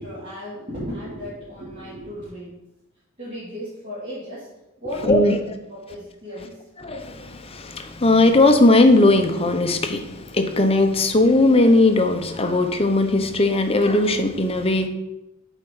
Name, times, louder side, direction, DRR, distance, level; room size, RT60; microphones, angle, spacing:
voice 1, 0.0-2.6 3.2-4.5 4.8-6.6, equal, 35° right, 3.0 m, -35 dB
voice 2, 5.0-5.3 6.8-14.9, left 2 dB, 30° left, 0.8 m, -18 dB
8.5 x 4.5 x 6.2 m
head